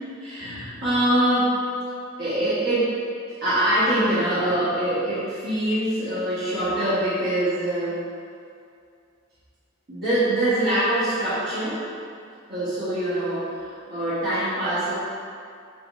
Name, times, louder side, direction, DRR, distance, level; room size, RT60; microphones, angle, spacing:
voice 1, 0.2-1.6 2.2-8.0 9.9-11.8 12.5-14.9, right 1 dB, 55° right, -14 dB, 1.1 m, -24 dB
5.8 x 3.0 x 2.5 m, 2.4 s
head